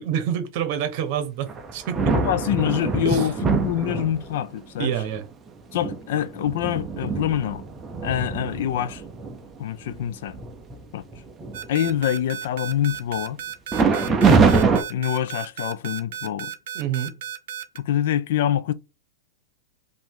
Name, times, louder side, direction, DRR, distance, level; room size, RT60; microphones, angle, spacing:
voice 1, 0.0-2.1 3.0-3.3 4.8-5.2 16.7-17.1, right 9 dB, 40° right, 1.0 m, -27 dB
sound 1, 1.5-4.5 5.2-5.3 5.7-9.4 9.9-10.0 10.3-10.7 11.1-11.9 13.7-14.8, right 4 dB, 10° right, 0.5 m, -23 dB
voice 2, 2.1-4.9 5.7-7.6 8.0-9.0 9.6-10.4 10.9-11.0 11.7-13.4 14.0-14.5 14.9-16.5 17.7-18.7, left 10 dB, 55° left, 0.4 m, -25 dB
sound 2, 11.5-17.8, right 10 dB, 60° right, 0.7 m, -34 dB
4.9 x 2.7 x 3.7 m
supercardioid pair, 175°, 0 cm